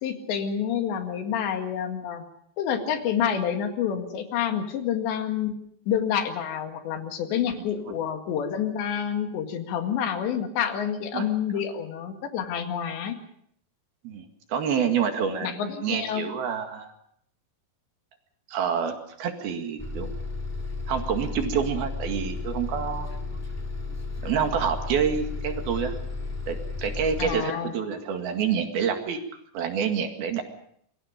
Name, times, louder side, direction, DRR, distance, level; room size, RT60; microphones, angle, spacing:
voice 1, 0.0-2.2 2.6-5.5 5.9-13.2 15.4-16.3 27.2-27.7, left 8 dB, 85° left, 5 dB, 4.2 m, -28 dB
voice 2, 7.6-7.9 11.1-11.3 14.0-16.9 18.5-20.1 20.9-23.1 24.2-25.9 26.5-29.2 29.5-30.4, right 7 dB, 65° right, 5 dB, 3.8 m, -28 dB
Bus, 19.8-27.3, left 3 dB, 15° left, 0.6 m, -33 dB
26.5 x 22.5 x 5.2 m, 0.68 s
omnidirectional pair, 4.9 m